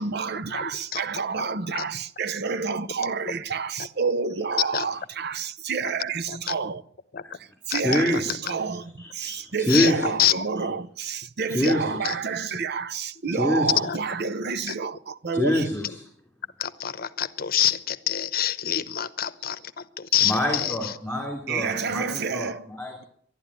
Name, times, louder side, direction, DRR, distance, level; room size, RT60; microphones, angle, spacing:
voice 1, 0.0-6.8 7.7-15.7 21.5-22.6, right 5 dB, 60° right, 0.7 m, -29 dB
voice 2, 0.5-1.0 1.7-1.8 3.0-3.1 4.7-4.9 6.3-6.6 7.1-7.2 7.7-8.2 8.5-8.6 9.7-10.3 11.6-12.1 13.8-14.0 14.7-14.8 16.6-20.9, left 11 dB, 50° left, 0.8 m, -27 dB
voice 3, 7.8-8.3 9.0-10.1 11.5-12.1 13.3-13.7 15.3-16.0 20.2-23.0, left 1 dB, 5° left, 3.1 m, -26 dB
12.0 x 11.5 x 9.8 m
head